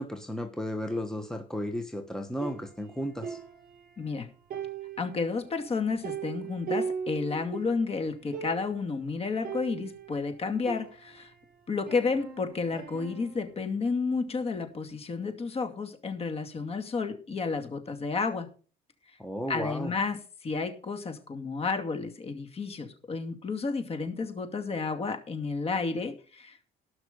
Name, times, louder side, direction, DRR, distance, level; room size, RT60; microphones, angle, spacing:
voice 1, 0.0-3.4 19.2-19.9, equal, 5° left, 5 dB, 1.2 m, -34 dB
sound 1, 2.4-4.2 4.5-7.8 8.1-8.2 8.3-8.9 9.4-11.4 11.9-13.5, right 6 dB, 60° right, 7.2 m, -39 dB
voice 2, 4.0-4.3 5.0-11.3 11.7-18.5 19.5-26.6, left 4 dB, 35° left, 7 dB, 2.4 m, -31 dB
17.0 x 6.0 x 5.2 m, 0.38 s
cardioid pair, 110°, 17 cm